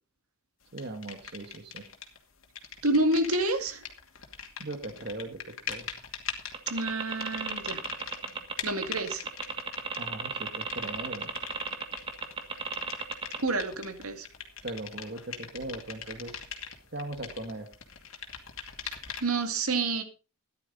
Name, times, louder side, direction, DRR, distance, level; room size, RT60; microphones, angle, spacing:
voice 1, 0.7-1.9 4.6-5.9 9.9-11.3 14.6-16.4 16.9-17.7, right 2 dB, 50° right, 6 dB, 1.4 m, -39 dB
sound 1, 0.8-2.2 2.4-19.5, left 8 dB, 65° left, 2.5 m, -42 dB
voice 2, 2.8-3.8 6.7-7.8 8.6-9.3 13.4-14.3 19.2-20.0, right 2 dB, 85° right, 7 dB, 2.2 m, -28 dB
sound 2, 6.5-13.4, right 4 dB, 25° right, 1.5 m, -34 dB
14.5 x 11.5 x 4.0 m, 0.32 s
head